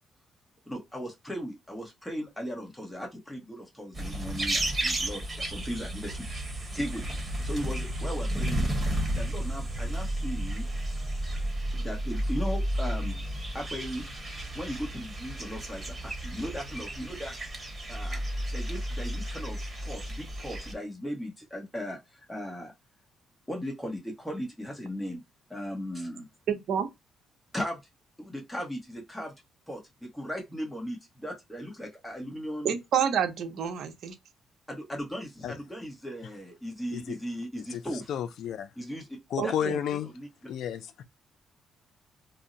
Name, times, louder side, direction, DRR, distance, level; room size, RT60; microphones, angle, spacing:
voice 1, 0.7-6.3 6.7-7.1 7.4-8.6 9.2-10.6 11.7-13.2 13.5-14.0 14.5-17.5 17.9-18.2 18.5-22.7 23.5-25.2 25.5-26.3 27.5-27.8 28.2-29.3 29.7-32.7 34.7-38.1 38.8-39.1 39.4-39.8 40.1-40.3, equal, 5° left, 1.0 m, -37 dB
sound 1, 3.9-20.7, right 1 dB, 20° right, 1.2 m, -32 dB
voice 2, 26.5-26.9 32.6-34.1 39.4-39.8, right 8 dB, 70° right, 0.6 m, -28 dB
voice 3, 38.1-38.7 39.3-40.1 40.5-41.0, left 9 dB, 75° left, 0.4 m, -32 dB
2.6 x 2.1 x 3.8 m
cardioid pair, 90°, 0 cm